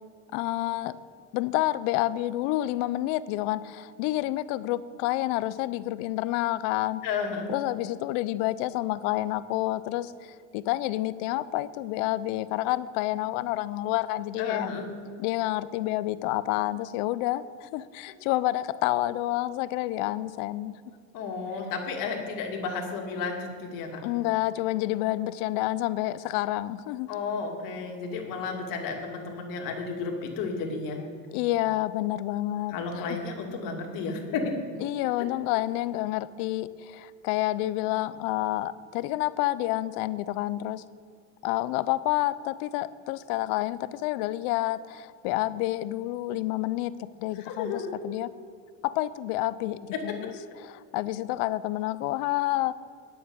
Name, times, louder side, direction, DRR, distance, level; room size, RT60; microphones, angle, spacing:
voice 1, 0.3-1.0 1.3-7.0 7.5-14.7 15.2-20.8 24.0-27.1 31.3-33.2 34.8-40.8 41.4-48.3 48.8-50.3 50.6-52.7, left 16 dB, 80° left, 16 dB, 0.6 m, -29 dB
voice 2, 7.0-7.5 14.4-14.9 21.1-24.0 27.1-31.0 32.7-34.6 47.3-47.9 49.9-50.0, left 4 dB, 60° left, 1 dB, 2.4 m, -32 dB
10.0 x 7.0 x 8.7 m, 2.2 s
cardioid pair, 130°, 37 cm